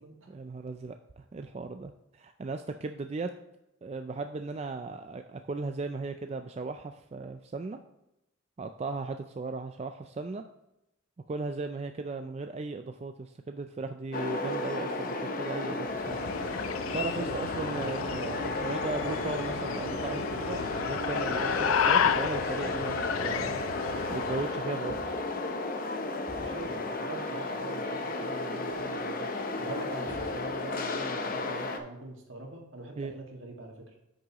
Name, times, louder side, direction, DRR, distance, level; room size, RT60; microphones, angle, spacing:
voice 1, 0.3-3.3 3.8-7.8 8.6-10.4 11.3-16.2 16.9-23.6 24.1-25.2 33.0-33.1, right 3 dB, 30° right, 6 dB, 0.3 m, -37 dB
sound 1, 14.1-31.8, left 2 dB, 45° left, 0.7 m, -33 dB
sound 2, 15.9-24.5, left 8 dB, 85° left, 0.4 m, -32 dB
voice 2, 16.9-17.7 26.4-33.8, right 2 dB, 70° right, 0 dB, 1.9 m, -43 dB
sound 3, 24.9-25.4 26.3-26.8 28.4-29.0 30.1-30.7, equal, 25° left, 2.1 m, -49 dB
8.6 x 6.5 x 2.9 m, 0.89 s
head